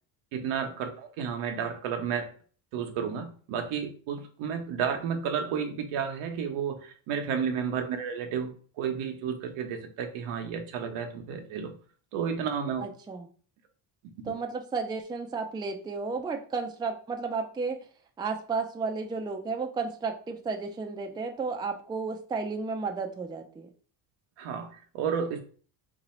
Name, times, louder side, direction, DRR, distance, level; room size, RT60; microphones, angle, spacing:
voice 1, 0.3-2.3 2.7-11.7 12.1-12.8 24.4-25.4, right 7 dB, 85° right, 5 dB, 0.9 m, -32 dB
voice 2, 12.8-13.3 14.3-17.8 18.2-23.7, right 4 dB, 10° right, 4 dB, 0.3 m, -33 dB
3.0 x 2.7 x 4.2 m, 0.43 s
cardioid pair, 105°, 48 cm